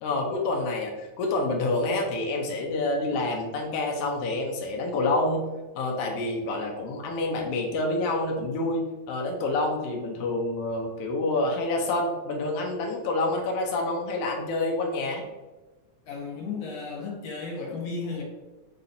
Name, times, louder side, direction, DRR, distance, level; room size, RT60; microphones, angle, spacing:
voice 1, 0.0-5.4 5.7-8.8 9.1-15.2, left 2 dB, 85° left, 0 dB, 1.3 m, -27 dB
voice 2, 16.1-18.2, left 4 dB, 65° left, -2 dB, 1.9 m, -34 dB
4.2 x 4.0 x 2.6 m, 1.1 s
omnidirectional pair, 3.5 m